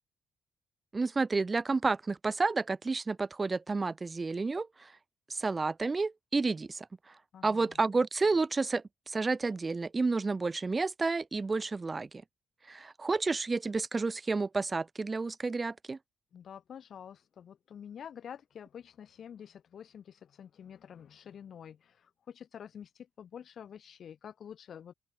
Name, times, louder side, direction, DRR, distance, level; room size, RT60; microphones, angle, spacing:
voice 1, 0.9-4.9 5.3-6.9 7.4-12.1 12.7-16.0, right 3 dB, 25° right, 0.6 m, -30 dB
voice 2, 7.3-7.8 16.3-24.9, left 8 dB, 60° left, 4.1 m, -48 dB
open air
cardioid pair, 90°, 0 cm